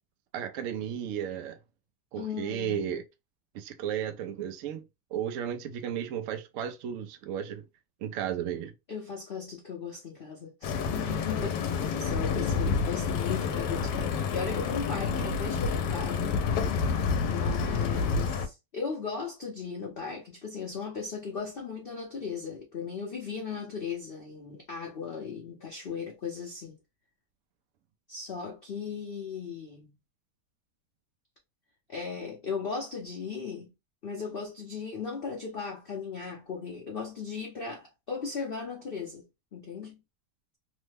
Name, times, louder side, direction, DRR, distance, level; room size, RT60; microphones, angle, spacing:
voice 1, 0.3-1.6 2.1-3.0 3.5-4.8 5.1-7.6 8.0-8.7, right 9 dB, 75° right, 0.7 m, -34 dB
voice 2, 2.2-3.0 8.9-16.4 17.3-26.8 28.1-29.9 31.9-33.7 34.0-39.2 39.5-40.0, left 5 dB, 60° left, 0.6 m, -37 dB
sound 1, 10.6-18.5, left 5 dB, 80° left, 1.2 m, -29 dB
3.1 x 2.0 x 3.2 m
omnidirectional pair, 1.8 m